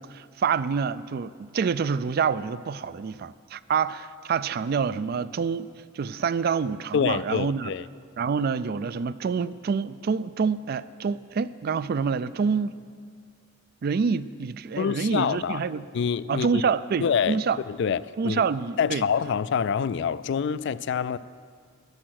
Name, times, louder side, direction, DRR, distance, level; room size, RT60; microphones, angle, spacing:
voice 1, 0.0-5.7 5.9-7.7 8.2-12.8 13.8-15.8 16.3-17.6 18.2-19.0, right 5 dB, 50° right, 16 dB, 0.3 m, -27 dB
voice 2, 6.9-7.8 14.8-15.6 15.9-16.6 17.0-17.4 17.7-18.4 18.8-21.2, left 7 dB, 60° left, 18 dB, 0.3 m, -26 dB
13.5 x 10.5 x 6.4 m, 2.1 s
head